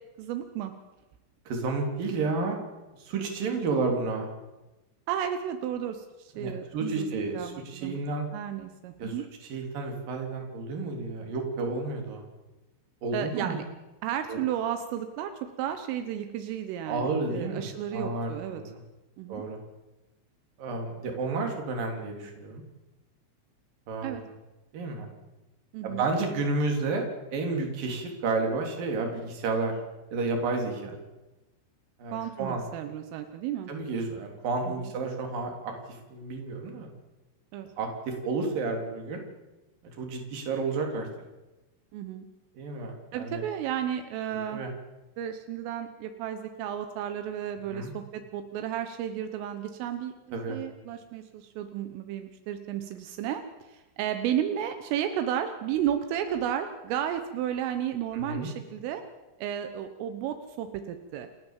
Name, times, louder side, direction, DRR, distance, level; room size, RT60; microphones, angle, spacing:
voice 1, 0.2-0.7 5.1-7.1 7.3-8.0 8.3-9.2 13.1-13.6 14.0-18.6 19.2-19.4 24.0-24.2 25.7-26.0 32.1-33.7 34.7-34.9 37.5-37.7 41.9-42.3 43.1-44.6 45.2-50.1 50.5-59.0 59.4-61.3, right 10 dB, 85° right, 8 dB, 3.7 m, -33 dB
voice 2, 1.5-2.6 3.0-4.3 6.3-8.3 9.0-9.1 9.4-12.2 13.0-13.6 14.3-14.4 16.9-18.8 19.3-19.6 20.6-22.6 23.9-24.2 24.7-25.1 25.8-27.1 27.3-29.7 30.1-31.0 32.0-32.6 33.7-36.9 37.8-39.2 40.0-41.1 42.6-43.4 44.5-44.7 47.7-47.9 50.3-50.6 58.1-58.5, right 3 dB, 50° right, 2 dB, 4.5 m, -31 dB
28.5 x 14.0 x 7.4 m, 1.1 s
omnidirectional pair, 5.7 m